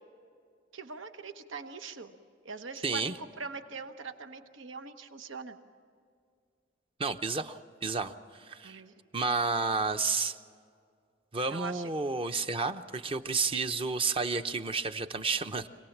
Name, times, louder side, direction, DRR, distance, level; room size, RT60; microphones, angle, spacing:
voice 1, 0.7-2.1 2.4-5.6 8.6-8.9 11.5-11.9, right 4 dB, 80° right, 8 dB, 1.1 m, -42 dB
voice 2, 2.8-3.1 7.0-8.7 9.1-10.4 11.3-15.7, right 4 dB, 30° right, 9 dB, 0.7 m, -31 dB
26.0 x 18.5 x 7.3 m, 2.2 s
head